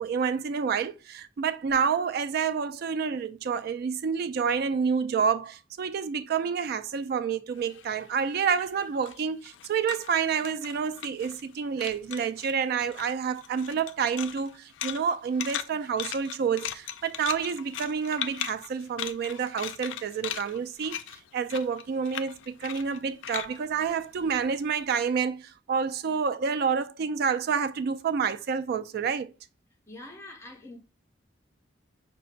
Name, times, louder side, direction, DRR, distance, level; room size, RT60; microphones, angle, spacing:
voice 1, 0.0-21.0 21.3-29.3, right 6 dB, 60° right, 0.3 m, -28 dB
sound 1, 7.6-11.5 11.8-12.6 12.9-24.7, left 10 dB, 80° left, 0.3 m, -39 dB
voice 2, 29.9-30.8, left 2 dB, 15° left, 0.7 m, -44 dB
5.5 x 2.1 x 2.4 m
head